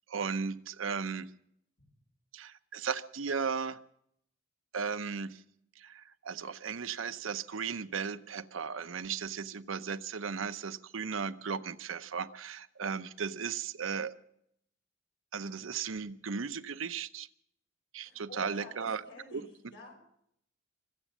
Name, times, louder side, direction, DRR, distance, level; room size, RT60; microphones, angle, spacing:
voice 1, 0.1-1.3 2.3-3.8 4.7-5.4 5.8-14.1 15.3-17.3 17.9-19.0 19.3-19.4, right 6 dB, 85° right, 13 dB, 0.7 m, -36 dB
voice 2, 18.0-20.0, left 1 dB, 60° left, 0 dB, 6.3 m, -51 dB
24.5 x 8.2 x 7.3 m, 0.71 s
head